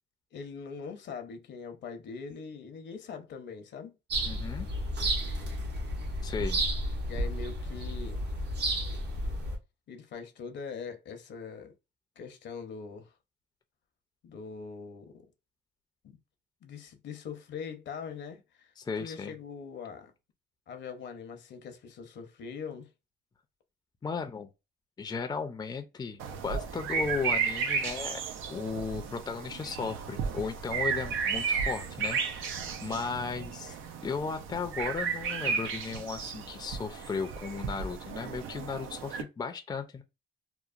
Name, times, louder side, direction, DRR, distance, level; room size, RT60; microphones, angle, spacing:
voice 1, 0.3-4.0 7.1-8.2 9.9-11.7 12.2-13.1 14.2-15.3 16.0-16.2 16.6-18.7 19.0-20.1 20.7-22.9, left 5 dB, 65° left, 0.7 m, -42 dB
sound 1, 4.1-9.6, right 1 dB, 60° right, 0.9 m, -32 dB
voice 2, 4.2-4.7 6.2-6.6 18.8-19.3 24.0-24.5 25.0-28.2 28.5-40.0, left 5 dB, 20° left, 0.4 m, -36 dB
sound 2, 26.2-39.2, right 6 dB, 85° right, 0.5 m, -34 dB
2.9 x 2.0 x 2.4 m
cardioid pair, 90°, 20 cm